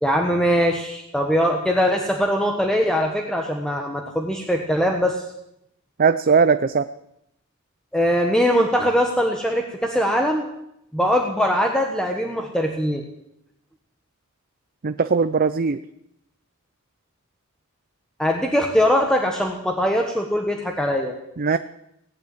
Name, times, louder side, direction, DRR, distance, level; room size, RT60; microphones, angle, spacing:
voice 1, 0.0-5.2 7.9-10.4 10.9-13.0 18.2-21.1, equal, 5° left, 2 dB, 1.3 m, -21 dB
voice 2, 6.0-6.9 14.8-15.8 21.4-21.6, right 5 dB, 40° right, 11 dB, 0.5 m, -19 dB
17.5 x 8.8 x 9.2 m, 0.79 s
head